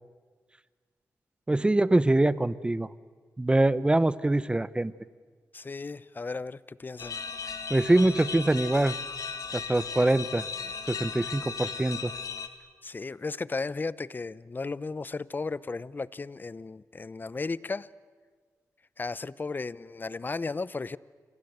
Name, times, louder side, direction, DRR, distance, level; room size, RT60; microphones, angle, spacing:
voice 1, 1.5-2.9 3.4-4.9 7.7-8.9 9.5-10.4 10.9-12.1, right 2 dB, 15° right, 17 dB, 0.9 m, -24 dB
voice 2, 5.5-7.2 12.8-17.9 19.0-21.0, left 3 dB, 30° left, 19 dB, 0.7 m, -35 dB
sound 1, 7.0-12.5, left 5 dB, 70° left, 1.9 m, -36 dB
28.5 x 25.5 x 8.1 m, 1.5 s
cardioid pair, 80°, 6 cm